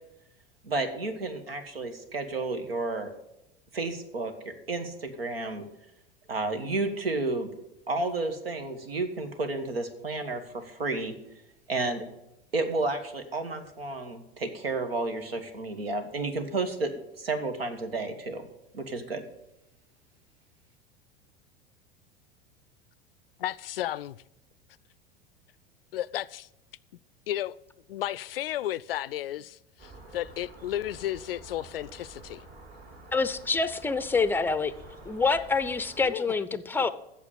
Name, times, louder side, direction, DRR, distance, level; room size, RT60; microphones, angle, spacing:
voice 1, 0.6-3.1 3.7-5.6 6.3-7.5 7.9-11.1 11.7-12.0 12.5-16.9 17.2-18.5 18.7-19.2, right 3 dB, 75° right, 1.5 m, -31 dB
voice 2, 23.4-24.2 25.9-26.5 27.3-27.6 27.9-32.4 36.0-36.3, left 13 dB, 70° left, 0.4 m, -33 dB
sound 1, 29.8-36.1, right 2 dB, 30° right, 2.6 m, -49 dB
voice 3, 33.1-34.7 35.1-36.9, left 4 dB, 5° left, 0.6 m, -26 dB
8.4 x 7.1 x 8.6 m
figure-of-eight pair, 80°, 30 cm